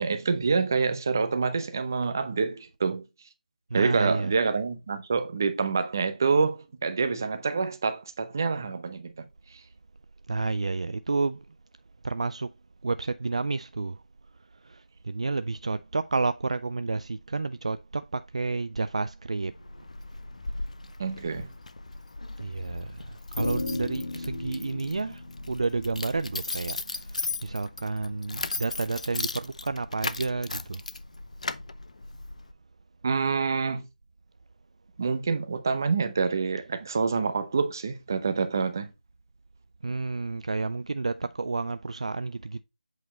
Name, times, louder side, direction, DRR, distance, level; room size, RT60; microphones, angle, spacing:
voice 1, 0.0-3.0 3.7-9.2 21.0-21.5 33.0-33.9 35.0-38.9, right 4 dB, 25° right, 0.8 m, -27 dB
voice 2, 3.7-4.3 10.3-11.4 12.0-12.5 12.8-14.0 14.6-19.5 22.4-30.8 39.8-42.6, right 3 dB, 45° right, 0.3 m, -30 dB
Keys jangling, 19.4-32.5, left 3 dB, 55° left, 0.7 m, -37 dB
sound 1, 23.4-27.9, left 2 dB, 85° left, 2.7 m, -36 dB
8.1 x 4.6 x 4.2 m
figure-of-eight pair, 175°, 4 cm